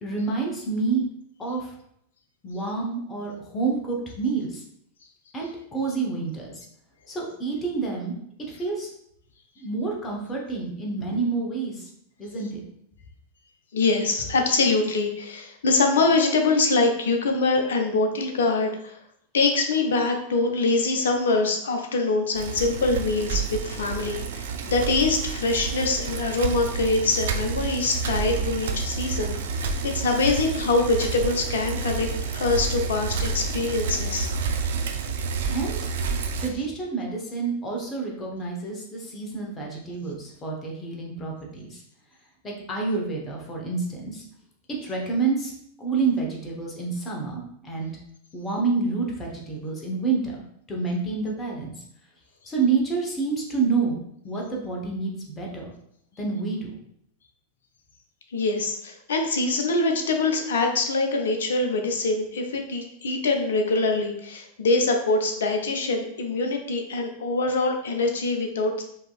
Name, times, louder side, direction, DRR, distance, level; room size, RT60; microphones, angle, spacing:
voice 1, 0.0-1.0 1.4-1.7 2.4-4.6 5.3-6.6 7.1-8.1 8.5-8.9 9.6-11.9 12.2-12.6 35.5-35.8 36.4-41.8 42.4-44.2 44.8-45.5 45.8-47.9 48.3-50.4 50.7-51.7 52.5-54.0 54.2-55.7 56.2-56.8, right 4 dB, 20° left, -1 dB, 0.9 m, -28 dB
voice 2, 13.7-19.0 19.3-34.3 58.3-68.8, left 3 dB, 65° left, 3 dB, 0.6 m, -24 dB
Bicycle, 22.4-36.5, right 5 dB, 60° right, 0.4 m, -29 dB
4.7 x 2.8 x 2.3 m, 0.72 s
figure-of-eight pair, 90°, 0 cm